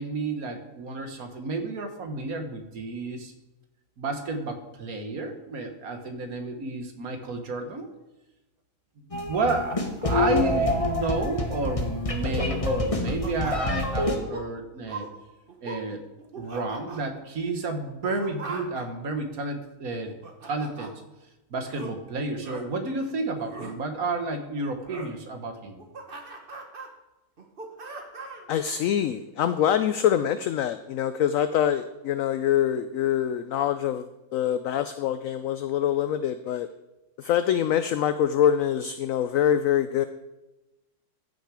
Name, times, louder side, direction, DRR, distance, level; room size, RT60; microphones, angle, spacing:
voice 1, 0.0-3.3 4.0-7.9 9.3-15.0 15.6-16.0 16.4-20.2 20.4-20.9 21.5-25.8, right 3 dB, 65° right, 6 dB, 1.8 m, -31 dB
sound 1, 9.1-14.2, left 2 dB, 25° left, 1.2 m, -27 dB
sound 2, 13.0-13.8 14.1-14.5 14.9-15.1 15.5-15.8 16.2-17.0 17.9-18.8 19.9-20.9 21.7-21.9 22.4-22.6 23.4-23.7 24.8-25.1 25.6-26.9 27.4-28.5, right 3 dB, 35° right, 1.4 m, -39 dB
voice 2, 28.5-34.1 34.3-36.7 37.2-40.1, left 10 dB, 70° left, 11 dB, 0.9 m, -24 dB
14.5 x 6.6 x 4.9 m, 1.0 s
omnidirectional pair, 1.6 m